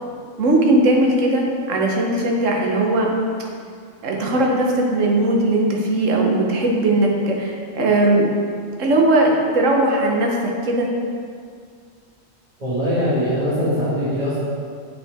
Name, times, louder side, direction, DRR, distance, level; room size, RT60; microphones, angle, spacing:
voice 1, 0.4-3.1 4.0-8.3 8.8-10.9, right 2 dB, 70° right, 0 dB, 1.3 m, -18 dB
voice 2, 12.6-14.4, equal, 30° right, -12 dB, 1.5 m, -21 dB
7.5 x 5.5 x 3.5 m, 2.2 s
omnidirectional pair, 1.4 m